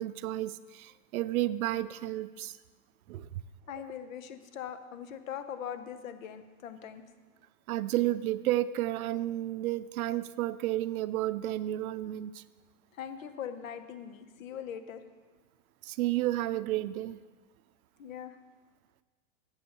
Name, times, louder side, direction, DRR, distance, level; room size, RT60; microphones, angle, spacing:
voice 1, 0.0-2.5 3.1-3.3 7.7-12.4 15.9-17.2, right 14 dB, 85° right, 15 dB, 0.5 m, -31 dB
voice 2, 3.7-7.0 12.9-15.0 18.0-18.4, left 8 dB, 70° left, 10 dB, 0.9 m, -41 dB
12.0 x 7.3 x 3.0 m, 1.4 s
supercardioid pair, 165°, 42 cm